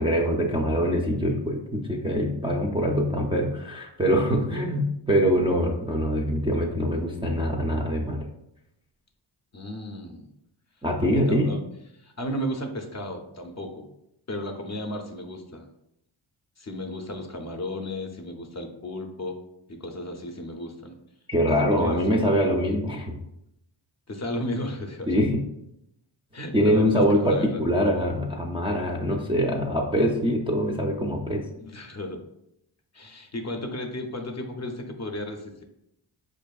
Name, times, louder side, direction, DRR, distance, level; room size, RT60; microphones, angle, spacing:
voice 1, 0.0-8.2 10.8-11.5 21.3-23.1 25.1-25.4 26.5-31.4, equal, 10° right, -2 dB, 0.4 m, -24 dB
voice 2, 9.5-10.3 11.0-11.6 11.9-13.9 14.3-15.7 16.6-19.4 19.7-20.9 21.5-22.3 24.1-25.1 26.3-27.6 31.6-32.2 32.9-35.6, left 1 dB, 35° left, 4 dB, 0.5 m, -34 dB
4.8 x 2.5 x 2.3 m, 0.81 s
cardioid pair, 75°, 47 cm